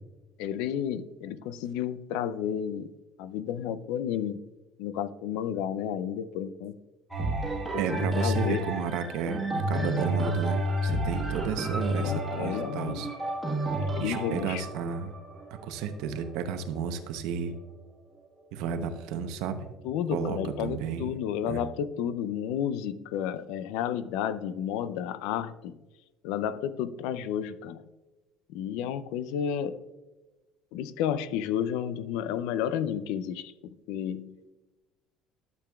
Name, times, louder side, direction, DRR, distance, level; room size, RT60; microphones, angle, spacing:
voice 1, 0.4-4.4 4.8-6.8 7.7-8.6 11.9-13.1 13.8-14.6 19.8-25.8 26.2-27.8 28.5-29.8 30.7-34.4, left 9 dB, 85° left, 0.4 m, -32 dB
sound 1, 7.1-16.9 17.5-17.6, right 1 dB, 10° right, 1.4 m, -31 dB
voice 2, 7.8-9.4 9.7-13.1 13.9-15.1 15.6-17.5 18.5-19.7 20.1-21.1 21.5-21.6, right 6 dB, 75° right, 0.8 m, -32 dB
12.0 x 6.9 x 2.3 m
cardioid pair, 155°, 0 cm